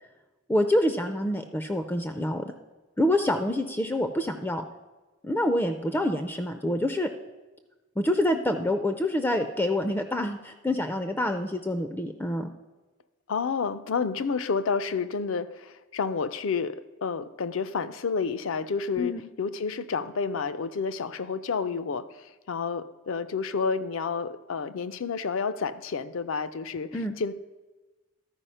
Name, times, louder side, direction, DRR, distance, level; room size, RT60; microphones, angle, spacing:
voice 1, 0.5-2.5 3.0-4.6 5.2-7.1 8.0-12.5 19.0-19.2 26.9-27.1, left 1 dB, 10° left, 7 dB, 0.3 m, -26 dB
voice 2, 13.3-26.9 27.2-27.3, left 5 dB, 70° left, 13 dB, 0.5 m, -30 dB
12.5 x 4.8 x 5.5 m, 1.2 s
head